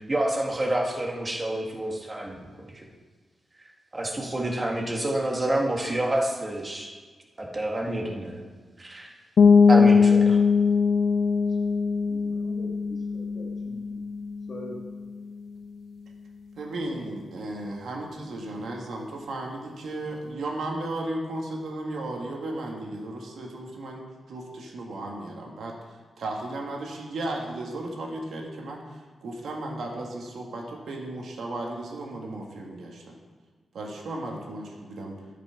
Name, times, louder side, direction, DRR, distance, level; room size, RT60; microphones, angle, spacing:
voice 1, 0.0-2.4 3.9-6.9 7.4-8.4 8.8-9.1 9.7-10.4, right 1 dB, 20° right, 0 dB, 1.6 m, -28 dB
sound 1, 9.4-15.0, left 5 dB, 65° left, 0.5 m, -21 dB
voice 2, 12.1-14.1 14.5-14.8, left 1 dB, 40° left, -3 dB, 1.4 m, -43 dB
voice 3, 16.6-33.1 33.7-35.2, right 2 dB, 75° right, 0 dB, 1.7 m, -35 dB
12.5 x 6.0 x 5.8 m, 1.4 s
wide cardioid pair, 140°, 0 cm